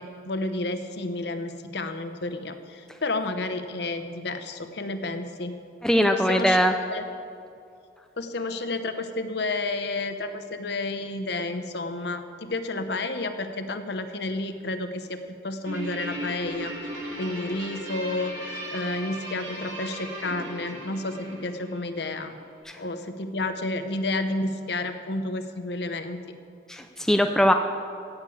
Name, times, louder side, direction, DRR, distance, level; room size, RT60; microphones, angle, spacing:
voice 1, 0.0-5.6 6.1-7.0 8.2-16.7 17.2-22.4 22.8-26.2, left 2 dB, 60° left, 8 dB, 0.9 m, -31 dB
voice 2, 5.8-6.7 22.7-22.8 26.7-27.5, equal, 5° left, 5 dB, 0.5 m, -21 dB
Guitar, 15.7-22.3, right 1 dB, 85° right, 3.8 m, -37 dB
15.5 x 6.7 x 8.4 m, 2.5 s
head